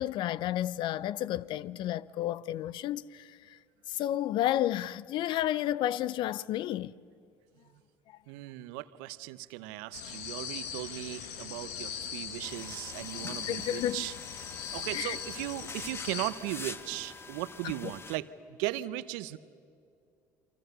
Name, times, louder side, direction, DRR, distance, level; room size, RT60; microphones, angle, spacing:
voice 1, 0.0-3.4 3.9-6.9 13.2-14.0 14.9-15.2 17.8-17.9, left 13 dB, 60° left, 0.6 m, -31 dB
voice 2, 8.3-14.1 14.7-19.4, right 16 dB, 75° right, 0.9 m, -37 dB
sound 1, 9.9-16.3, left 7 dB, 80° left, 1.9 m, -40 dB
sound 2, 12.4-18.2, left 4 dB, 25° left, 1.6 m, -45 dB
28.5 x 24.5 x 6.8 m
hypercardioid pair, 65°, 9 cm